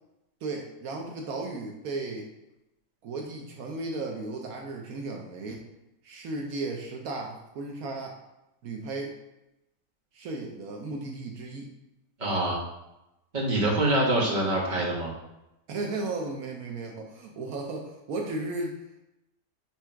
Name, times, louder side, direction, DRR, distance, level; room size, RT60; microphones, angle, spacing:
voice 1, 0.4-2.3 3.0-5.7 6.0-8.2 8.6-9.1 10.1-11.7 15.7-18.8, right 3 dB, 80° right, 0 dB, 1.2 m, -35 dB
voice 2, 12.2-12.6 13.3-15.1, right 1 dB, 30° right, -4 dB, 1.6 m, -25 dB
6.1 x 3.5 x 4.5 m, 0.92 s
omnidirectional pair, 1.5 m